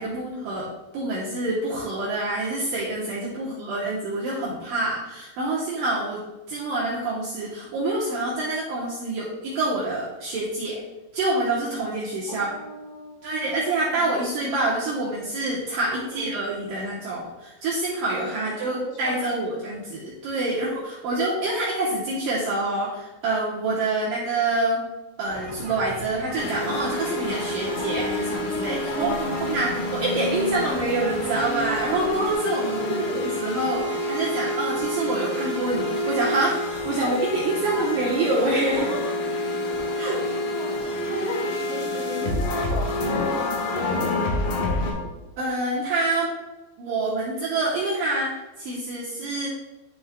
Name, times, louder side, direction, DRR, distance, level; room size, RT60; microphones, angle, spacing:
voice 1, 0.0-10.8 11.1-12.5 13.2-24.8 25.2-38.9 40.0-40.2 41.1-41.3 45.4-46.3 46.8-49.5, right 2 dB, 75° right, -5 dB, 2.1 m, -27 dB
voice 2, 3.4-3.9 12.3-14.0 15.8-16.3 18.3-19.5 28.9-30.0 32.8-33.2 37.0-37.9 38.7-39.1 39.6-45.1, left 1 dB, 65° left, -2 dB, 3.2 m, -37 dB
sound 1, 25.3-32.4, right 2 dB, 45° right, 3.7 m, -38 dB
sound 2, 26.4-44.9, left 1 dB, 85° left, 3.8 m, -28 dB
11.0 x 6.2 x 2.2 m, 1.1 s
omnidirectional pair, 5.0 m